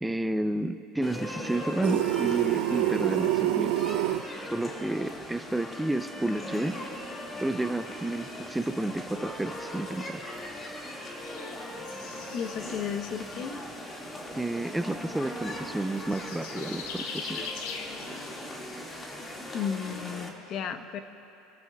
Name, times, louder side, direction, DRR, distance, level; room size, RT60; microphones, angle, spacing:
voice 1, 0.0-4.0 4.5-6.8 7.4-10.2 14.4-17.4, right 1 dB, 5° right, 10 dB, 0.5 m, -31 dB
sound 1, 1.0-20.3, left 1 dB, 25° left, 2.1 m, -39 dB
sound 2, 1.8-4.2, right 16 dB, 80° right, 0.5 m, -26 dB
sound 3, 11.2-18.3, left 5 dB, 75° left, 1.8 m, -43 dB
voice 2, 12.3-13.6 19.5-21.0, left 7 dB, 50° left, 8 dB, 0.9 m, -34 dB
28.0 x 15.0 x 2.4 m, 3.0 s
supercardioid pair, 100°, 0 cm